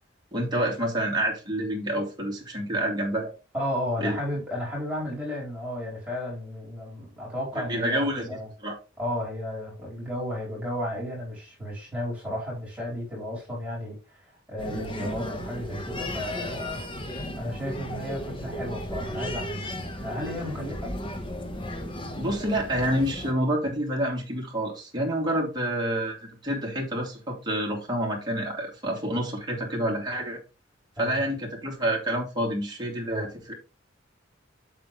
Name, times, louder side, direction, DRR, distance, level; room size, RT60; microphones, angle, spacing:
voice 1, 0.3-3.3 4.0-4.2 7.7-8.7 22.2-26.2 26.4-30.4 31.0-33.5, right 1 dB, 20° right, 2.6 m, -28 dB
voice 2, 3.5-8.5 9.0-14.2 14.5-16.8 17.4-19.7 20.0-20.9 31.0-31.2, left 1 dB, 5° right, 4.3 m, -33 dB
sound 1, 14.6-23.3, equal, 25° left, 1.2 m, -35 dB
7.6 x 7.5 x 3.1 m
head